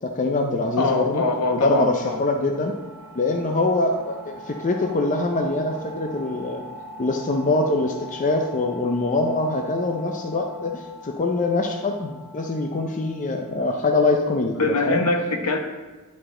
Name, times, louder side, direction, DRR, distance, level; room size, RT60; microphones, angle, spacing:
voice 1, 0.0-1.2 1.5-2.7 3.1-6.6 7.0-15.0, left 2 dB, 35° left, 3 dB, 0.5 m, -24 dB
sound 1, 0.6-14.1, left 1 dB, 10° right, 1.1 m, -42 dB
voice 2, 0.8-2.2 14.5-15.6, left 3 dB, 90° left, 4 dB, 1.0 m, -23 dB
10.5 x 4.9 x 3.7 m, 1.3 s
head